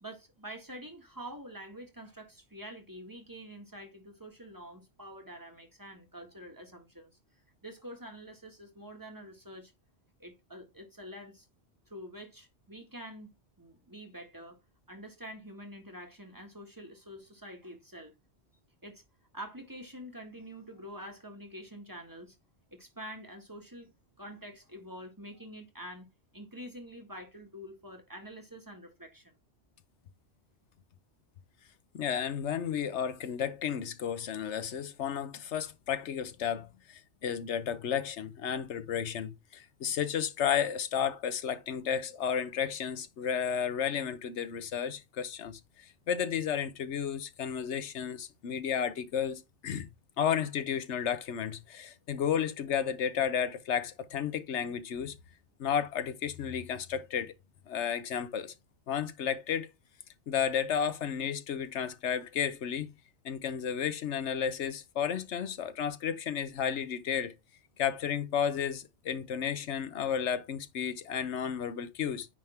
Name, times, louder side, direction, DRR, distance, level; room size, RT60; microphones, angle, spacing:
voice 1, 0.0-7.1 7.6-9.7 10.2-11.5 11.9-13.3 13.6-14.6 14.9-18.1 18.8-19.0 19.3-22.3 22.7-23.9 24.2-29.4, equal, 20° right, 1.6 m, -46 dB
voice 2, 31.9-49.9 50.2-55.2 55.6-57.3 57.7-58.5 58.9-59.7 60.3-62.9 63.2-67.3 67.8-72.3, left 8 dB, 85° left, 1.1 m, -32 dB
9.6 x 3.5 x 4.4 m
omnidirectional pair, 1.2 m